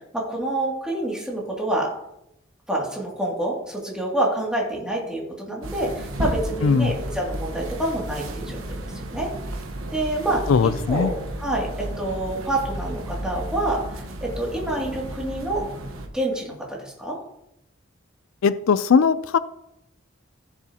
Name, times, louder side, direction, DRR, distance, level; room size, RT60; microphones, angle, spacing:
voice 1, 0.1-1.9 2.7-9.3 9.9-11.1 11.4-15.6 16.1-17.2, right 1 dB, 5° right, -3 dB, 2.3 m, -27 dB
sound 1, 5.6-16.1, right 1 dB, 80° right, 1.1 m, -33 dB
voice 2, 6.6-7.0 10.5-11.1 18.4-19.4, left 5 dB, 75° left, 14 dB, 0.4 m, -19 dB
15.0 x 7.1 x 2.8 m, 0.82 s
head